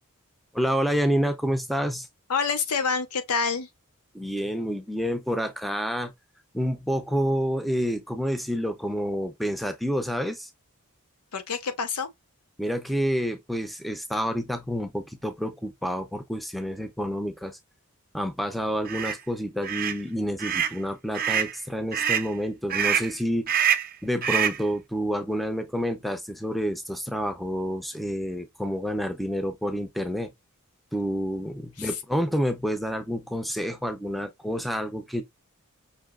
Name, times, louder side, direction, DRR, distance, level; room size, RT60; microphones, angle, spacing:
voice 1, 0.5-2.1 4.1-6.1 6.5-10.5 12.6-17.6 18.1-23.5 24.0-30.3 30.9-35.2, equal, ahead, 0.6 m, -28 dB
voice 2, 2.3-3.7 11.3-12.1 31.8-31.9, left 5 dB, 85° left, 0.8 m, -27 dB
sound 1, 18.9-19.1 19.6-20.0 20.4-20.8 21.1-21.5 21.9-22.3 22.7-23.1 23.5-23.9 24.2-24.6, right 8 dB, 40° right, 0.6 m, -25 dB
5.5 x 2.7 x 2.4 m
head